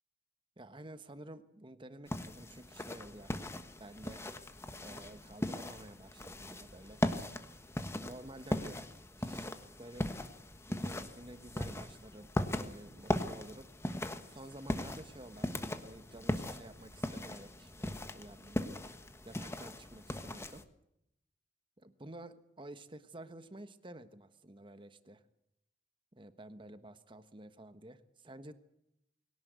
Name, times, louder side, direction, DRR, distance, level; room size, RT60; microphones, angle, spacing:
voice 1, 0.6-3.5 3.8-4.2 4.8-7.0 8.0-8.8 9.2-10.1 10.7-12.3 12.6-13.7 14.3-15.5 15.8-18.9 19.2-20.6 21.8-25.2 26.1-28.5, right 1 dB, 30° right, 10 dB, 1.3 m, -51 dB
sound 1, 2.1-20.6, left 1 dB, 15° left, 1.3 m, -39 dB
22.5 x 17.5 x 8.2 m, 0.81 s
head